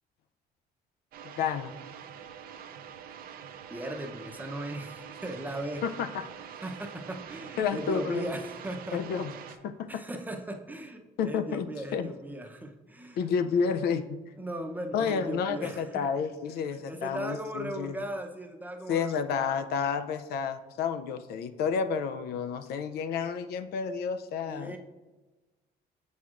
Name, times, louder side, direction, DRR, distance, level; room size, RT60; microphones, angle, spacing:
sound 1, 1.1-9.6, right 8 dB, 60° right, 0.5 m, -45 dB
voice 1, 1.4-1.7 5.8-6.1 7.6-8.2 8.9-9.3 9.6-9.9 11.2-12.1 13.2-14.2 14.9-18.0 18.9-24.8, left 6 dB, 70° left, 10 dB, 0.4 m, -30 dB
voice 2, 3.7-5.8 6.6-9.2 9.9-13.3 14.4-16.0 16.7-19.6 24.5-24.8, right 1 dB, 10° right, 3 dB, 0.6 m, -38 dB
6.9 x 6.2 x 2.4 m, 1.2 s
cardioid pair, 110°, 17 cm